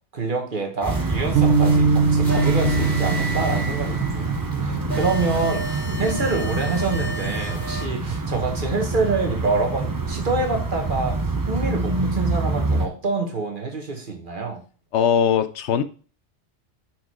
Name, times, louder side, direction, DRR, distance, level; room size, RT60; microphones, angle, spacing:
voice 1, 0.1-11.2 11.5-14.6, right 3 dB, 50° right, 2 dB, 1.6 m, -26 dB
sound 1, 0.8-7.9, right 2 dB, ahead, 2.9 m, -33 dB
sound 2, 0.9-12.9, right 3 dB, 25° right, 0.6 m, -26 dB
sound 3, 1.3-7.8, right 4 dB, 85° right, 1.0 m, -24 dB
voice 2, 14.9-15.8, left 8 dB, 80° left, 11 dB, 0.9 m, -20 dB
6.2 x 4.6 x 4.7 m, 0.38 s
omnidirectional pair, 1.1 m